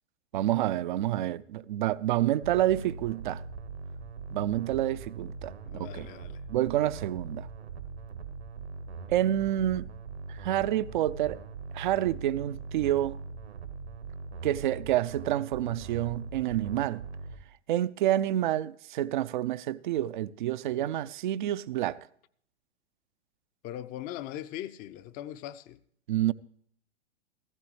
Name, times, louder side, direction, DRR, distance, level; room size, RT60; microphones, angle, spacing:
voice 1, 0.3-3.4 4.3-6.1 6.5-7.5 9.1-9.9 10.3-11.4 11.7-13.2 14.4-17.0 17.7-22.0 26.1-26.3, right 13 dB, 50° right, 0.5 m, -28 dB
sound 1, 2.4-17.4, right 4 dB, 75° right, 1.5 m, -41 dB
voice 2, 5.6-6.4 23.6-25.8, left 12 dB, 25° left, 0.6 m, -40 dB
16.0 x 15.5 x 3.1 m
figure-of-eight pair, 100°, 33 cm